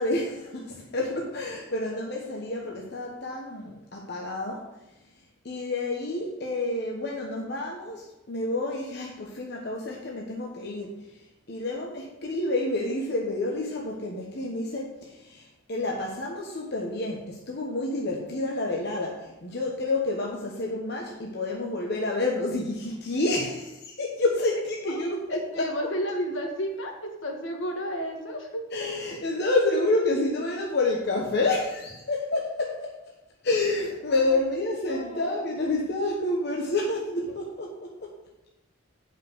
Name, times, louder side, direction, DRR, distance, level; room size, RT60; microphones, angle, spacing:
voice 1, 0.0-4.8 5.4-23.6 24.0-25.7 28.7-32.9 33.4-38.2, left 2 dB, 55° left, -1 dB, 1.1 m, -29 dB
voice 2, 25.3-28.9 34.1-34.4 34.9-35.4, equal, 75° left, 2 dB, 1.7 m, -33 dB
8.5 x 5.6 x 6.2 m, 0.97 s
head